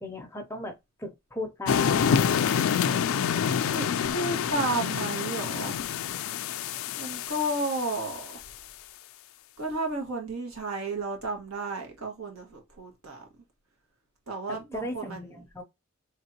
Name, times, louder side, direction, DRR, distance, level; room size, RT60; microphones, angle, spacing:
voice 1, 0.0-2.1 14.5-15.6, left 1 dB, 10° left, 0.6 m, -37 dB
sound 1, 1.7-8.4, left 7 dB, 70° left, 0.3 m, -27 dB
voice 2, 3.7-5.8 7.0-8.4 9.6-13.3 14.3-15.5, right 2 dB, 80° right, 1.6 m, -32 dB
3.6 x 3.4 x 2.8 m
head